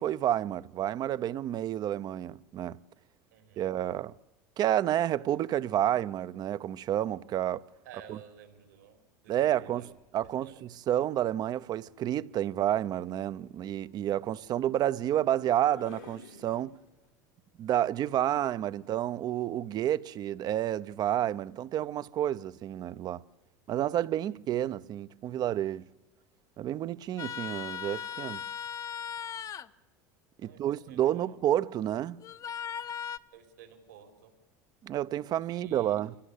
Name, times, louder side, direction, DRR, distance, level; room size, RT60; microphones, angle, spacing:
voice 1, 0.0-2.8 3.6-4.1 4.6-7.6 8.1-8.2 9.3-9.8 10.1-10.5 10.9-16.7 17.6-23.2 23.7-25.9 26.6-28.4 30.4-32.2 34.8-36.2, right 11 dB, 45° right, 0.7 m, -30 dB
voice 2, 3.3-3.7 7.8-9.9 10.4-10.6 24.3-24.6 30.4-31.3 33.3-34.3 35.5-36.0, right 8 dB, 85° right, 4.0 m, -53 dB
sound 1, 10.1-10.4 11.8-17.1, left 7 dB, 85° left, 4.2 m, -55 dB
sound 2, 27.2-29.7 32.2-33.2, left 8 dB, 35° left, 0.9 m, -38 dB
25.5 x 17.0 x 8.4 m
hypercardioid pair, 90°, 9 cm